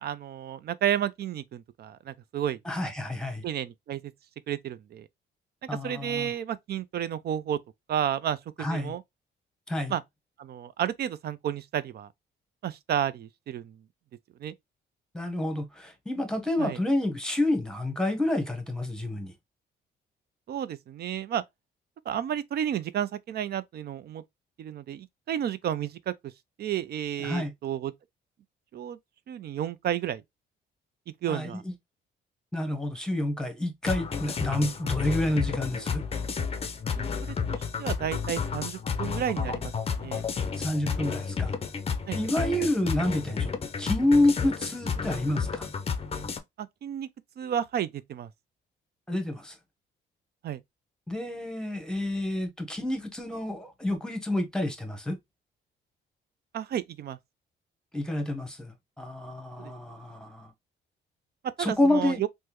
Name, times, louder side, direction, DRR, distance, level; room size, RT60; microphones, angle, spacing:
voice 1, 0.0-2.6 3.4-4.0 4.5-5.1 5.8-7.6 7.9-9.0 9.9-10.0 10.4-12.1 12.6-13.8 14.4-14.5 16.6-16.8 20.5-21.4 22.1-24.2 24.6-26.3 26.6-27.9 28.7-29.0 29.3-30.2 31.2-31.6 37.0-39.7 40.0-40.2 42.1-42.2 46.6-47.1 47.4-48.3 50.4-50.6 56.5-57.2 59.6-59.7 61.6-62.3, right 10 dB, 55° right, 0.4 m, -32 dB
voice 2, 2.6-3.4 5.7-6.3 8.6-8.9 9.7-9.9 15.1-19.3 27.2-27.5 31.3-31.7 32.5-36.0 40.6-41.5 42.1-43.5 43.8-45.7 49.1-49.5 51.1-55.2 57.9-60.5 61.6-62.2, left 1 dB, 5° left, 0.9 m, -28 dB
sound 1, 33.8-46.4, left 5 dB, 30° left, 0.5 m, -31 dB
3.4 x 2.1 x 2.9 m
cardioid pair, 90°, 20 cm